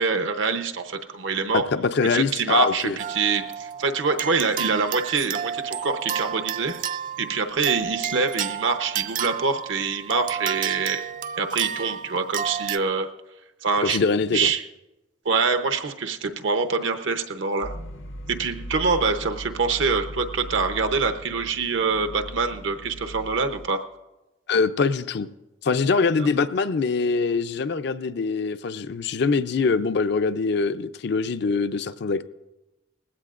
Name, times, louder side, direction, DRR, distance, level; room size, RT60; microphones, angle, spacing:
voice 1, 0.0-1.6 2.0-6.8 7.2-11.0 11.4-13.1 13.6-14.0 14.3-14.6 15.2-17.7 18.3-23.8 26.2-26.3, right 4 dB, 75° right, 7 dB, 0.8 m, -25 dB
voice 2, 1.5-3.0 13.8-14.5 24.5-25.3 25.6-32.3, left 4 dB, 60° left, 12 dB, 0.5 m, -23 dB
sound 1, 3.0-12.8, right 8 dB, 45° right, 0.3 m, -31 dB
sound 2, 17.6-23.7, equal, 80° left, 0.9 m, -38 dB
19.5 x 16.0 x 2.5 m, 1.0 s
head